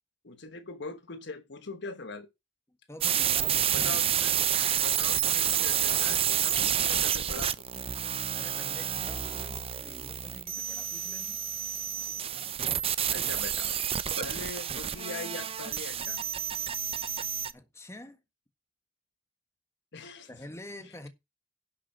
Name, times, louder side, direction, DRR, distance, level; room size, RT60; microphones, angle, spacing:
voice 1, 0.2-2.3 3.7-4.4 4.8-7.7 12.3-12.6 13.1-13.8 14.2-16.2 19.9-20.3, left 3 dB, 60° left, 1.2 m, -41 dB
voice 2, 2.9-4.2 8.3-11.4 14.2-14.3 17.5-18.2 20.3-21.1, left 1 dB, 15° left, 1.6 m, -47 dB
sound 1, 3.0-17.5, right 9 dB, 30° right, 0.6 m, -29 dB
11.0 x 6.1 x 5.7 m
head